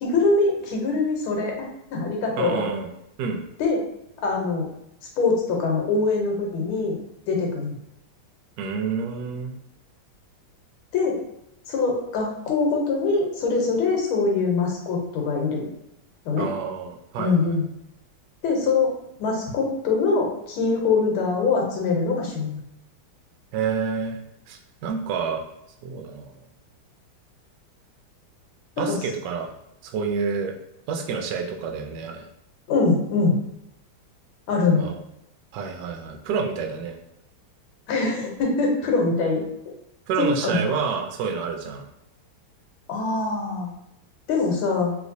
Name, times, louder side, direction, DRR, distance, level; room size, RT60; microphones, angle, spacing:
voice 1, 0.0-2.6 3.6-3.8 4.2-4.7 5.2-7.0 7.3-7.8 10.9-11.2 11.7-15.7 16.2-16.5 17.2-17.6 18.4-18.9 19.2-22.6 28.8-29.0 32.7-33.4 34.5-34.8 37.9-39.4 40.2-40.6 42.9-43.7 44.3-44.9, left 4 dB, 80° left, 0 dB, 1.7 m, -23 dB
voice 2, 2.4-2.9 3.2-3.4 8.6-9.5 16.4-17.6 23.5-24.2 24.5-25.4 25.8-26.3 28.8-29.5 29.8-30.5 30.9-32.3 34.8-35.0 35.5-37.0 40.1-41.9, right 6 dB, 75° right, 2 dB, 1.0 m, -28 dB
3.1 x 3.1 x 2.6 m, 0.80 s
omnidirectional pair, 2.3 m